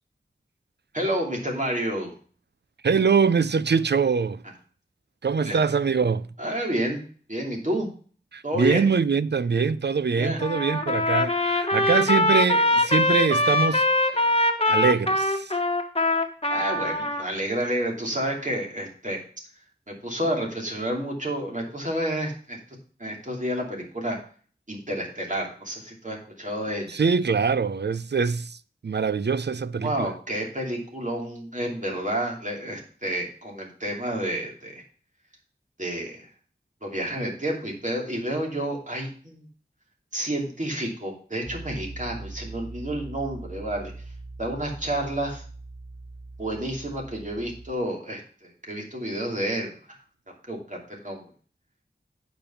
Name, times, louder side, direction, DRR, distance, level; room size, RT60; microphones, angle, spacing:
voice 1, 0.9-2.1 5.4-5.6 6.4-7.0 7.3-7.9 8.4-8.9 10.2-10.4 16.5-19.2 19.9-22.6 23.0-24.2 24.7-27.0 29.8-34.8 35.8-36.3 36.8-39.5 40.1-43.9 44.4-45.4 46.4-49.7 50.5-51.2, right 1 dB, 45° right, 2.7 m, -30 dB
voice 2, 2.8-4.4 5.2-6.3 8.3-14.2 14.7-15.5 26.9-28.6 28.8-30.1, right 5 dB, 75° right, 0.5 m, -23 dB
Trumpet, 10.4-17.2, left 2 dB, 35° left, 1.2 m, -22 dB
Piano, 41.5-47.7, right 2 dB, 10° right, 2.4 m, -41 dB
8.7 x 5.2 x 5.6 m
wide cardioid pair, 50°, 18 cm